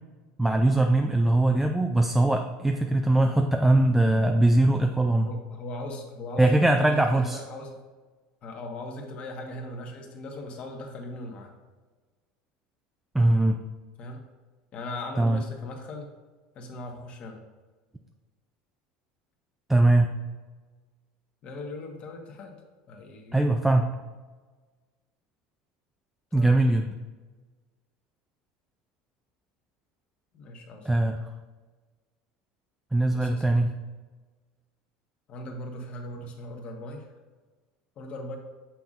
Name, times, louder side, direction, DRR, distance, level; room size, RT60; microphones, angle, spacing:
voice 1, 0.4-5.3 6.4-7.4 13.1-13.6 15.2-15.4 19.7-20.1 23.3-23.8 26.3-26.9 30.9-31.2 32.9-33.7, right 2 dB, 5° right, 4 dB, 0.3 m, -21 dB
voice 2, 5.2-7.8 8.4-11.5 14.0-14.2 14.7-16.1 16.5-17.4 21.4-22.6 22.9-23.8 26.3-26.6 30.3-31.0 33.1-33.6 35.3-37.1 38.0-38.4, left 1 dB, 40° left, 2 dB, 1.2 m, -39 dB
6.9 x 5.8 x 2.5 m, 1.3 s
supercardioid pair, 125°, 3 cm